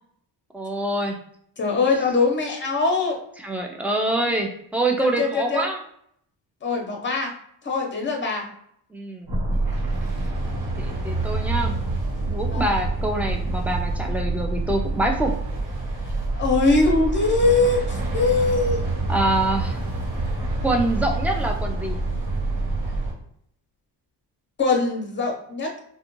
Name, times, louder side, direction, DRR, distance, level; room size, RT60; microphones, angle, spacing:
voice 1, 0.5-1.2 3.4-5.8 8.9-9.3 10.7-11.7 12.3-15.3 19.1-19.8 20.6-22.0, right 2 dB, 5° right, 2 dB, 0.3 m, -25 dB
voice 2, 1.6-3.2 5.0-5.6 6.6-7.3 7.6-8.5 12.5-12.8 16.3-18.8 24.6-25.7, left 3 dB, 30° left, 2 dB, 0.7 m, -22 dB
sound 1, 9.3-23.1, right 2 dB, 60° right, 1.1 m, -26 dB
2.4 x 2.2 x 3.0 m, 0.68 s
cardioid pair, 110°, 41 cm